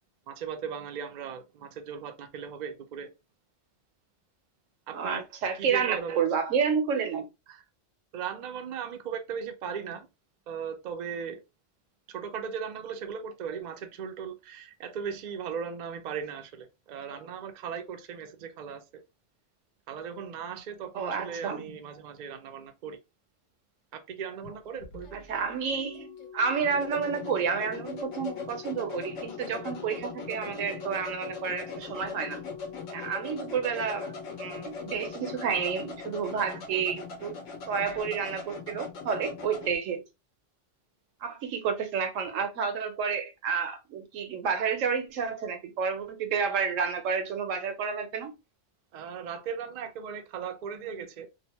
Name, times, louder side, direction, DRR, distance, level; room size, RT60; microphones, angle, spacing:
voice 1, 0.3-3.1 4.9-5.2 5.6-6.2 7.5-7.6 8.1-10.1 10.5-11.4 12.1-19.0 19.9-23.0 23.9-25.3 48.9-51.3, right 7 dB, 65° right, 0.4 m, -37 dB
voice 2, 4.9-7.3 20.9-21.6 25.1-32.4 32.9-37.3 37.7-40.0 41.2-48.3, right 6 dB, 85° right, 1.1 m, -30 dB
sound 1, 24.4-39.8, left 5 dB, 80° left, 1.1 m, -41 dB
Organ, 25.8-36.7 37.8-38.0, left 8 dB, 50° left, 0.8 m, -47 dB
2.8 x 2.0 x 2.8 m
omnidirectional pair, 1.3 m